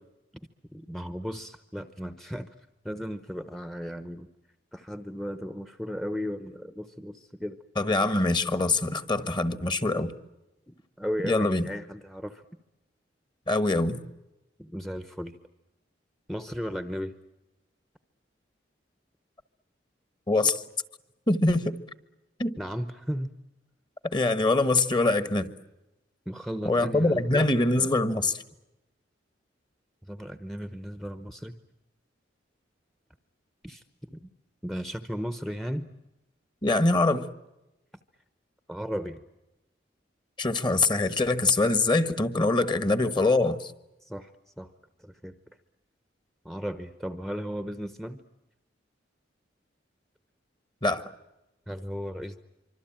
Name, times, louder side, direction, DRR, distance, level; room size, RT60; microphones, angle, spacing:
voice 1, 0.7-2.5 2.8-4.3 4.7-7.6 10.7-12.4 14.6-15.4 16.3-17.1 22.6-23.3 26.3-27.5 30.0-31.6 33.6-34.3 34.6-35.9 38.7-39.2 44.0-44.7 45.0-45.3 46.4-48.2 51.7-52.4, equal, ahead, 10 dB, 0.9 m, -35 dB
voice 2, 7.8-10.1 11.2-11.7 13.5-14.0 20.3-20.6 21.3-21.8 22.4-22.5 24.0-25.5 26.6-28.4 36.6-37.3 40.4-43.7 50.8-51.1, left 2 dB, 25° left, 12 dB, 1.4 m, -24 dB
25.5 x 25.0 x 8.9 m, 0.96 s
head